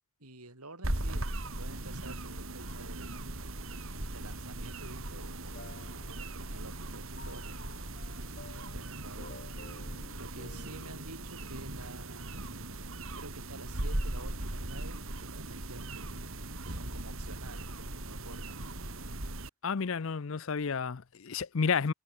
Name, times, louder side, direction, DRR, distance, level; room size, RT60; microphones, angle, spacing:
voice 1, 0.2-3.2 4.1-7.7 8.4-9.4 10.2-12.5 13.1-16.2 16.6-18.9, right 2 dB, 90° right, 7.3 m, -50 dB
sound 1, 0.8-19.5, right 1 dB, 65° right, 3.7 m, -39 dB
sound 2, 4.8-11.1, left 2 dB, 45° left, 4.7 m, -53 dB
voice 2, 19.6-21.9, left 5 dB, 60° left, 0.6 m, -31 dB
head